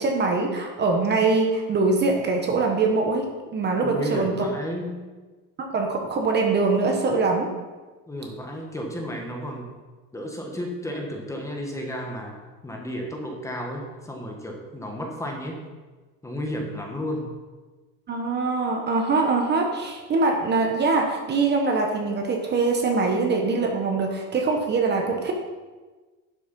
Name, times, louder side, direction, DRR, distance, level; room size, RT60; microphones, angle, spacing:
voice 1, 0.0-3.2 3.5-4.3 5.6-7.5 18.1-25.3, right 3 dB, 30° right, 2 dB, 1.2 m, -23 dB
voice 2, 3.8-5.1 8.1-9.7 10.1-12.3 12.6-15.6 16.2-17.4, equal, 10° left, 0 dB, 1.4 m, -32 dB
11.0 x 6.4 x 5.3 m, 1.3 s
cardioid pair, 155°, 37 cm